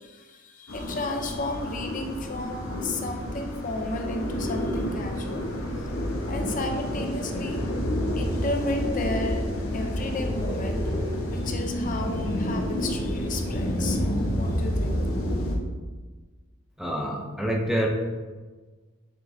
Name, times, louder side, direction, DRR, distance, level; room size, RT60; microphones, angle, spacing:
voice 1, 0.0-5.5 5.8-5.9 6.3-7.6 8.1-9.4 9.7-10.8 11.3-14.0 14.4-15.0, left 2 dB, 40° left, 4 dB, 0.6 m, -33 dB
sound 1, 0.7-15.6, equal, 80° left, 1.2 m, -29 dB
sound 2, 1.0-14.1, equal, 60° left, 1.9 m, -43 dB
voice 2, 16.8-17.9, right 1 dB, ahead, 0 dB, 0.5 m, -27 dB
7.1 x 6.5 x 2.7 m, 1.3 s
head